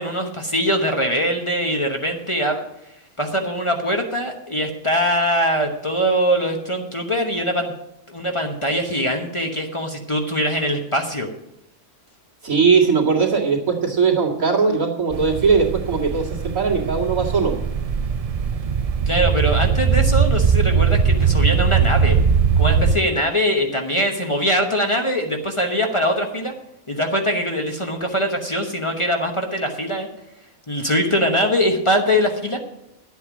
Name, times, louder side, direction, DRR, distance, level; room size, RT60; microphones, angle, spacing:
voice 1, 0.0-2.6 3.2-7.7 8.1-11.3 19.1-22.2 22.6-26.5 26.9-30.1 30.7-32.6, equal, 25° left, 3 dB, 1.0 m, -22 dB
voice 2, 12.4-17.5, right 5 dB, 90° right, -2 dB, 2.7 m, -19 dB
sound 1, 15.1-22.9, right 6 dB, 60° right, 0.3 m, -20 dB
11.0 x 8.3 x 6.1 m, 0.84 s
omnidirectional pair, 1.4 m